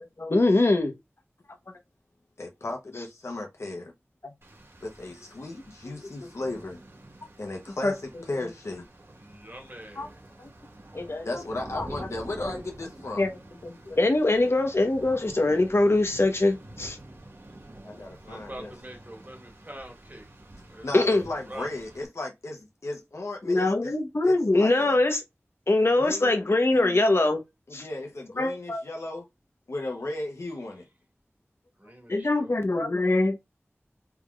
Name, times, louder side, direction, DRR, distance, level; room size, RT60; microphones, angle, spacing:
voice 1, 0.2-0.9 7.8-7.9 10.0-10.1 10.4-10.5 10.9-11.4 11.7-11.9 13.2-13.3 13.6-17.0 20.9-21.2 23.4-25.2 25.7-27.4 27.7-27.8 28.4-28.8 32.1-33.4, left 2 dB, 60° left, 1.0 m, -23 dB
voice 2, 2.4-3.9 4.8-6.8 7.4-8.9 11.2-13.2 17.8-18.7 20.8-23.9 24.2-25.0 26.0-27.0 27.7-29.3 29.7-30.9, left 2 dB, 90° left, 0.8 m, -36 dB
Rain, 4.4-22.0, right 1 dB, 60° right, 1.5 m, -48 dB
voice 3, 9.2-10.3 18.2-20.2 20.7-20.9 21.5-21.7 31.8-32.5, right 1 dB, 35° right, 1.9 m, -44 dB
4.4 x 3.7 x 2.4 m
wide cardioid pair, 55°, 5 cm